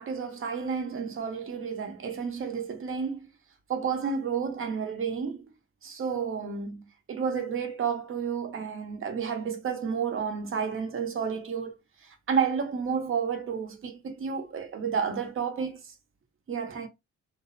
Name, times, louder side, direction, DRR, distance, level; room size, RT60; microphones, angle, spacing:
voice 1, 0.0-3.3 3.7-5.4 5.8-11.7 12.0-15.9 16.5-16.9, right 6 dB, 45° right, 0.8 m, -31 dB
2.6 x 2.0 x 2.5 m
cardioid pair, 90°, 30 cm